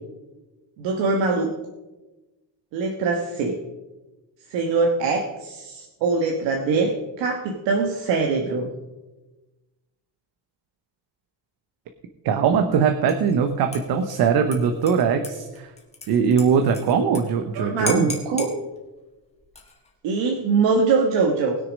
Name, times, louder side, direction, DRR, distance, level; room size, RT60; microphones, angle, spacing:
voice 1, 0.8-1.5 2.7-3.5 4.5-8.7 17.6-18.5 20.0-21.6, right 4 dB, 85° right, 2 dB, 1.5 m, -23 dB
voice 2, 12.2-15.7 16.1-18.1, right 6 dB, 60° right, 6 dB, 1.0 m, -21 dB
Dishes pots and pans / Liquid, 13.1-13.4 13.7-17.2 17.5-17.6 17.9-18.5 19.4-19.9, left 3 dB, 15° left, 1.8 m, -36 dB
19.5 x 6.7 x 5.3 m, 1.1 s
cardioid pair, 180°, 43 cm